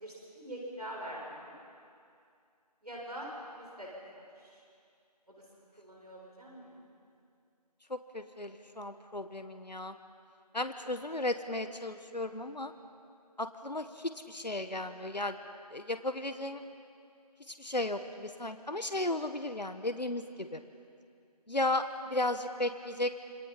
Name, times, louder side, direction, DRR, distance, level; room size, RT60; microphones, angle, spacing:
voice 1, 0.0-1.5 2.8-3.3 3.5-3.9 4.1-4.6 5.3-6.8 10.8-10.9, right 1 dB, 70° right, -3 dB, 6.9 m, -44 dB
voice 2, 7.9-9.9 10.5-12.7 13.4-15.4 15.7-16.6 17.5-20.6 21.5-23.1, left 2 dB, 85° left, 9 dB, 1.5 m, -35 dB
27.0 x 26.5 x 5.8 m, 2.4 s
figure-of-eight pair, 175°, 21 cm